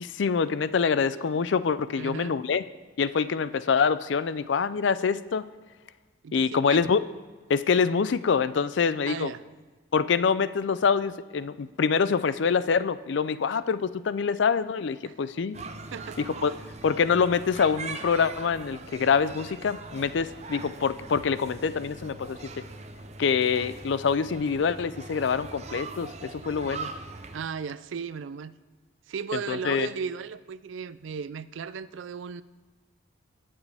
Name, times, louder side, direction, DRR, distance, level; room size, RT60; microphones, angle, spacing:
voice 1, 0.0-2.6 3.0-5.5 6.3-7.0 7.5-9.3 9.9-15.6 16.2-16.5 16.8-22.6 23.2-26.9 29.3-29.9, left 6 dB, 65° left, 15 dB, 0.4 m, -25 dB
voice 2, 2.0-2.4 6.2-6.8 9.1-9.4 15.0-15.2 15.9-16.2 27.3-28.6 29.1-32.4, right 6 dB, 75° right, 15 dB, 0.4 m, -35 dB
sound 1, 15.5-27.5, right 3 dB, 35° right, 0.7 m, -41 dB
20.0 x 7.3 x 3.4 m, 1.3 s
head